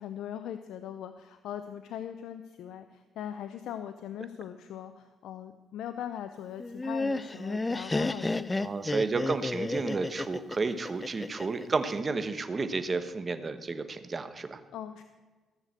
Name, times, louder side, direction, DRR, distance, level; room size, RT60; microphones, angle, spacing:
voice 1, 0.0-9.1 14.7-15.0, left 10 dB, 80° left, 9 dB, 0.6 m, -40 dB
Laughter, 6.6-11.6, left 2 dB, 20° left, 0.5 m, -31 dB
voice 2, 8.5-14.6, right 4 dB, 30° right, 10 dB, 1.2 m, -31 dB
15.5 x 6.7 x 7.8 m, 1.3 s
cardioid pair, 90°, 0 cm